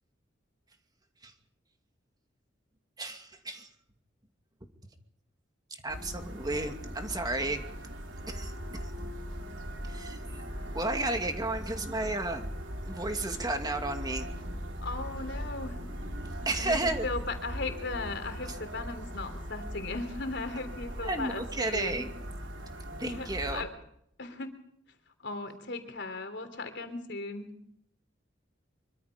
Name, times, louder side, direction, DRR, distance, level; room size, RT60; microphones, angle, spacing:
voice 1, 3.0-3.7 5.8-7.7 8.3-8.5 9.9-10.2 10.7-12.5 12.8-14.3 16.5-17.1 21.0-22.1 22.9-23.6, right 2 dB, 20° right, 5 dB, 2.4 m, -32 dB
sound 1, 5.9-23.6, equal, 70° right, 4.1 m, -39 dB
voice 2, 14.8-15.8 16.6-22.1 23.0-23.7 24.2-24.5 25.2-27.5, left 3 dB, 65° left, 8 dB, 3.5 m, -37 dB
25.0 x 24.0 x 5.2 m, 0.71 s
head